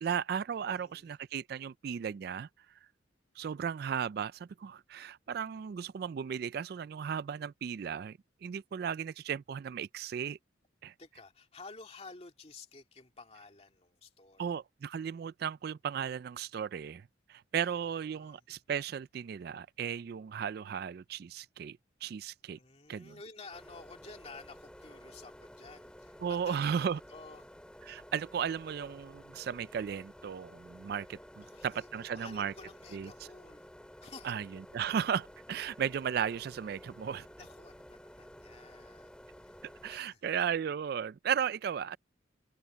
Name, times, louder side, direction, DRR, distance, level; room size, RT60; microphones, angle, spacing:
voice 1, 0.0-2.5 3.4-10.4 10.8-10.9 14.4-22.6 22.9-23.2 26.2-27.0 27.8-32.5 32.9-33.1 34.2-37.3 39.8-42.0, right 7 dB, 55° right, 0.3 m, -35 dB
voice 2, 0.6-1.1 11.0-14.5 17.6-18.4 22.5-27.5 31.4-31.9 32.1-33.7 34.0-34.4 37.4-39.6 39.9-40.2, left 3 dB, 30° left, 2.4 m, -52 dB
sound 1, 23.5-40.0, equal, 5° left, 2.3 m, -53 dB
head